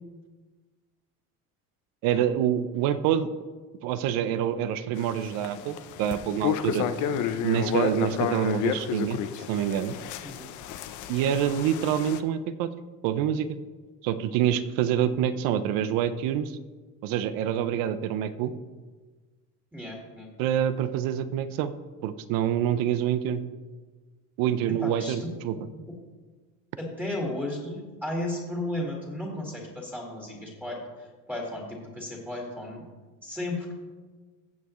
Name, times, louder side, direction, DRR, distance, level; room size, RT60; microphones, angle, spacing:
voice 1, 2.0-3.3 3.8-6.8 7.4-9.2 9.5-10.0 11.1-12.7 13.0-13.6 14.0-16.6 17.0-18.5 20.4-21.7 22.0-23.4 24.4-25.6, right 10 dB, 75° right, 13 dB, 0.7 m, -26 dB
sound 1, 5.0-12.2, left 9 dB, 60° left, 0.7 m, -31 dB
voice 2, 19.7-20.3 24.8-25.3 26.8-32.8 33.2-33.7, left 1 dB, 5° right, -2 dB, 2.0 m, -34 dB
15.5 x 7.3 x 3.1 m, 1.4 s
cardioid pair, 125°, 34 cm